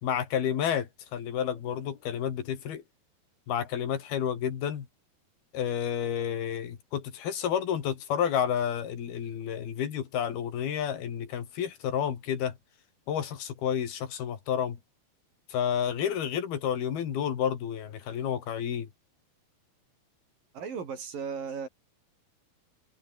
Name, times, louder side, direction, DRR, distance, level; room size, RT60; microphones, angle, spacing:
voice 1, 0.0-2.8 3.5-4.9 5.5-12.6 13.1-14.8 15.5-18.9, left 9 dB, 75° left, 4.5 m, -30 dB
voice 2, 20.5-21.7, right 6 dB, 60° right, 5.6 m, -36 dB
omnidirectional pair, 4.5 m